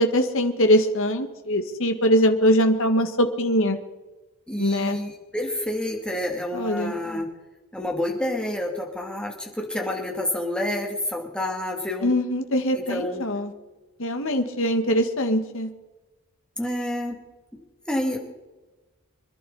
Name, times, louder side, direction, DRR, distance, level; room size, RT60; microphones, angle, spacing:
voice 1, 0.0-3.8 4.6-5.0 6.5-6.9 12.0-13.5 14.0-15.7, equal, 60° left, 6 dB, 1.7 m, -22 dB
voice 2, 4.5-7.3 7.7-12.1 12.7-13.2 16.6-17.2 17.5-17.6 17.9-18.2, left 1 dB, 5° left, 0 dB, 2.6 m, -28 dB
26.0 x 11.5 x 4.1 m, 1.1 s
head